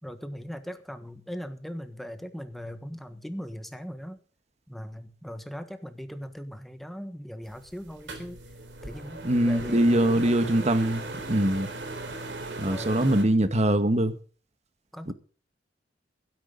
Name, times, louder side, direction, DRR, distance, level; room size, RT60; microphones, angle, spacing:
voice 1, 0.0-4.2 4.7-8.4 8.8-10.7 12.7-13.3 14.9-15.1, equal, ahead, 1.4 m, -39 dB
sound 1, 7.4-13.2, right 2 dB, 80° right, 3.5 m, -38 dB
voice 2, 9.2-11.7 12.6-14.2 15.1-15.2, right 1 dB, 40° right, 1.4 m, -23 dB
16.5 x 13.0 x 3.9 m
head